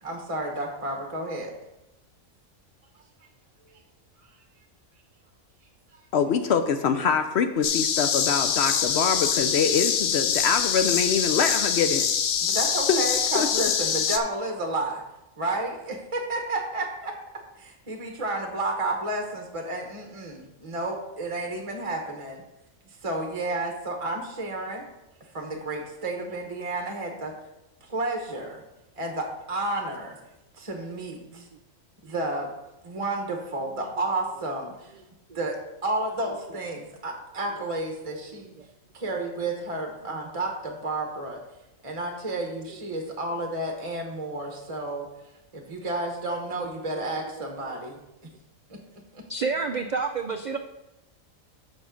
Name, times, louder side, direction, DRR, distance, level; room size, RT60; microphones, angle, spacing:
voice 1, 0.0-1.5 5.9-6.0 12.4-15.0 15.4-17.1 17.6-22.4 22.9-24.8 25.3-27.3 27.8-28.6 29.0-30.2 30.6-31.5 32.0-32.5 32.8-34.9 35.3-35.6 35.8-38.5 38.9-41.4 41.8-45.1 45.5-48.0 48.7-48.8 49.1-49.2, right 2 dB, 30° right, 2 dB, 0.9 m, -31 dB
voice 2, 6.1-12.1 12.9-13.0 13.3-13.5, left 6 dB, 65° left, 8 dB, 0.7 m, -24 dB
sound 1, 7.6-14.2, left 7 dB, 90° left, 1.1 m, -25 dB
voice 3, 38.3-38.7 46.8-46.9 47.4-47.7 49.3-50.6, right 4 dB, 90° right, 6 dB, 0.4 m, -31 dB
7.0 x 6.3 x 5.0 m, 0.94 s
omnidirectional pair, 1.4 m